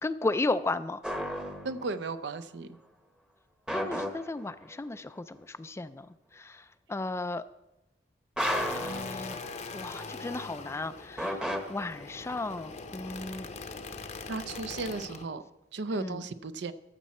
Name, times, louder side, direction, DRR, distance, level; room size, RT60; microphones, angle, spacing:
voice 1, 0.0-1.0 3.7-6.1 6.3-6.6 6.9-7.4 8.7-9.4 9.7-13.5 15.9-16.2, left 2 dB, 15° left, 13 dB, 0.3 m, -34 dB
sound 1, 1.0-2.1 3.7-4.7 8.4-9.9 11.2-12.4, equal, 5° right, 0.8 m, -34 dB
voice 2, 1.6-2.7 14.3-15.4 15.7-16.7, right 3 dB, 70° right, 12 dB, 0.6 m, -35 dB
sound 2, 8.4-15.3, left 4 dB, 40° left, 0.7 m, -42 dB
14.0 x 7.3 x 4.2 m, 0.93 s
head